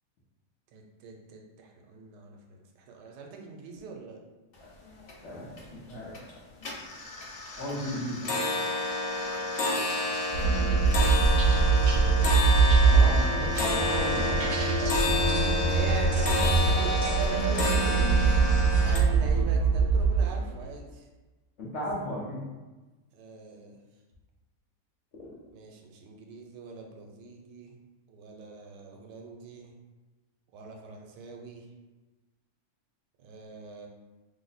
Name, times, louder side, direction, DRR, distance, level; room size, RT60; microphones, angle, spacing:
voice 1, 0.7-4.2 9.7-11.2 11.5-12.5 15.2-18.4 18.8-21.1 23.1-23.8 25.5-27.8 28.1-29.8 30.5-31.7 33.2-33.9, right 4 dB, 85° right, 1 dB, 1.2 m, -43 dB
sound 1, 4.6-4.7 5.0-5.6 6.0-6.3 6.6-19.0, left 2 dB, 85° left, 0.5 m, -30 dB
voice 2, 5.2-6.1 7.6-8.4 12.8-14.4 21.6-22.4, equal, 60° left, -6 dB, 0.8 m, -35 dB
sound 2, 10.3-20.5, right 4 dB, 70° right, 1.0 m, -23 dB
3.0 x 2.0 x 3.9 m, 1.2 s
omnidirectional pair, 1.7 m